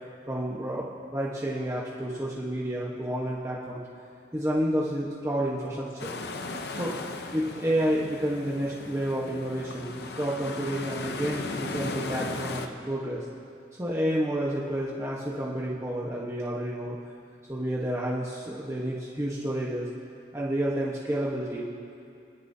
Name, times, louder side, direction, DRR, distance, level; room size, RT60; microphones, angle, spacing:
voice 1, 0.3-3.8 4.3-6.2 6.7-6.9 7.3-13.3 13.8-17.0 17.5-19.9 20.3-21.7, right 1 dB, 15° right, -5 dB, 1.1 m, -30 dB
sound 1, 6.0-12.7, left 2 dB, 60° left, 0.7 m, -36 dB
29.5 x 10.0 x 2.8 m, 2.5 s
head